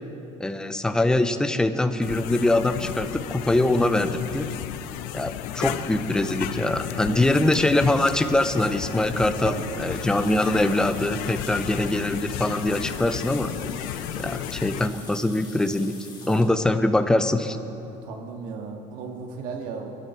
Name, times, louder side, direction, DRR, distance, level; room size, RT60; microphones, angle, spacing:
voice 1, 0.4-4.5 5.1-9.5 9.8-13.5 14.2-16.0 16.3-17.6, left 1 dB, 5° left, 9 dB, 0.5 m, -23 dB
sound 1, 2.0-14.9, left 11 dB, 80° left, 0.7 m, -33 dB
voice 2, 7.0-7.9 9.4-10.0 16.2-16.6 17.9-19.9, right 5 dB, 65° right, 2 dB, 1.9 m, -37 dB
sound 2, 9.9-16.5, left 4 dB, 30° left, 3.2 m, -45 dB
23.5 x 12.0 x 4.5 m, 3.0 s
cardioid pair, 165°, 15 cm